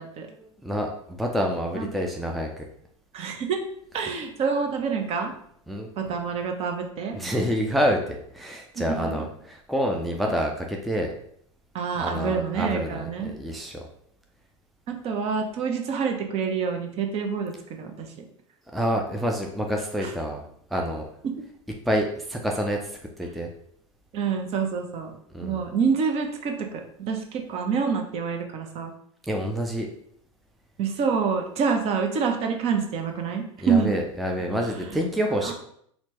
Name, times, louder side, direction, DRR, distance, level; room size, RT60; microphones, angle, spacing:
voice 1, 0.3-2.7 5.7-6.1 7.1-11.1 12.0-13.8 18.7-20.4 20.7-21.1 21.9-23.5 25.3-25.6 29.2-29.9 33.6-35.5, equal, ahead, 1 dB, 0.4 m, -28 dB
voice 2, 3.1-3.6 3.9-5.3 6.0-7.2 8.8-9.2 11.7-13.3 14.9-18.1 20.0-20.1 21.2-21.3 24.1-25.1 25.4-28.9 30.8-33.9 34.8-35.0 35.4-35.5, right 6 dB, 40° right, 4 dB, 0.6 m, -27 dB
4.1 x 2.2 x 2.9 m, 0.67 s
hypercardioid pair, 85°, 17 cm